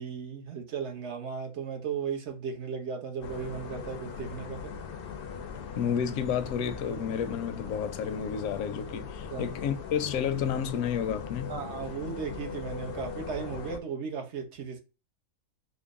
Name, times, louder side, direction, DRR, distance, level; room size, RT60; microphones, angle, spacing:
voice 1, 0.0-4.7 9.3-9.5 11.5-14.8, right 6 dB, 60° right, 1.0 m, -36 dB
sound 1, 3.2-13.8, left 6 dB, 60° left, 0.6 m, -40 dB
voice 2, 5.8-11.6, left 8 dB, 80° left, 1.0 m, -31 dB
3.8 x 2.1 x 3.5 m
omnidirectional pair, 1.4 m